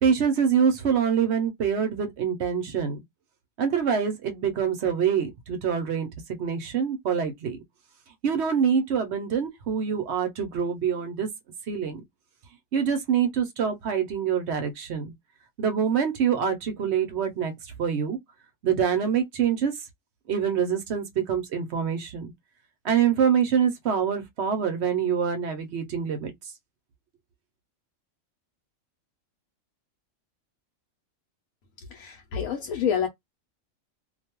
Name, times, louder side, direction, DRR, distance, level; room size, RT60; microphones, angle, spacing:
voice 1, 0.0-3.0 3.6-7.6 8.2-11.3 11.7-12.0 12.7-15.1 15.6-18.2 18.6-19.7 20.3-22.3 22.8-26.3, right 7 dB, 60° right, 0.9 m, -25 dB
voice 2, 31.8-33.1, left 7 dB, 85° left, 1.0 m, -28 dB
2.5 x 2.2 x 2.9 m
omnidirectional pair, 1.4 m